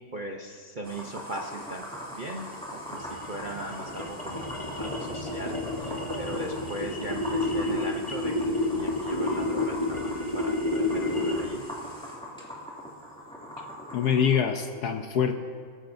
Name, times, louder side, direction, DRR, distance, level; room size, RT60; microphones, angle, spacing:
voice 1, 0.1-1.8 2.1-5.5 5.8-8.3 8.6-11.6, right 1 dB, 70° right, 0 dB, 0.4 m, -39 dB
sound 1, 0.8-14.3, equal, ahead, 2.4 m, -41 dB
sound 2, 2.9-11.6, left 2 dB, 20° left, 0.8 m, -30 dB
voice 2, 13.9-15.3, left 7 dB, 65° left, 5 dB, 1.1 m, -24 dB
20.5 x 13.0 x 2.6 m, 2.2 s
omnidirectional pair, 2.1 m